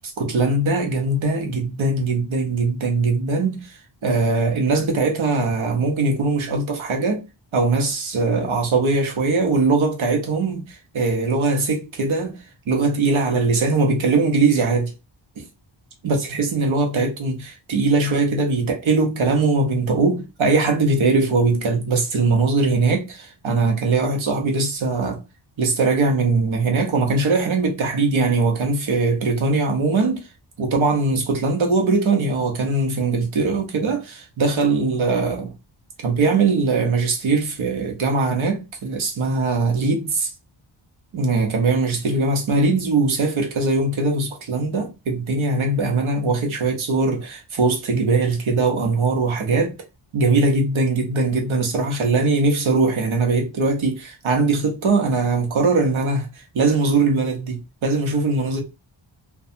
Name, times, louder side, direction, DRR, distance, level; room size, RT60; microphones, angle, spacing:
voice 1, 0.2-7.2 7.5-12.4 12.7-14.9 15.4-15.5 16.0-25.2 25.6-30.2 30.6-35.5 36.0-40.3 41.1-49.7 50.1-58.6, right 3 dB, 80° right, 0.9 m, -21 dB
2.7 x 2.3 x 2.6 m
wide cardioid pair, 125°, 47 cm